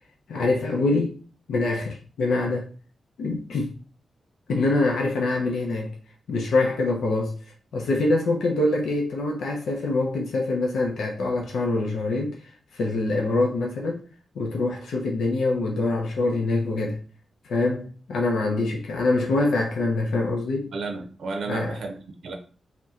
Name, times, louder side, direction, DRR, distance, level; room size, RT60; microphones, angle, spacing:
voice 1, 0.3-1.2 1.5-2.7 3.2-3.7 4.5-6.0 6.3-7.3 7.7-12.4 12.7-14.0 14.4-17.0 17.4-20.7 21.5-21.8, left 2 dB, 85° left, 0.5 m, -24 dB
voice 2, 20.7-22.3, right 3 dB, 80° right, 0.6 m, -33 dB
2.7 x 2.1 x 3.5 m
cardioid pair, 85°, 0 cm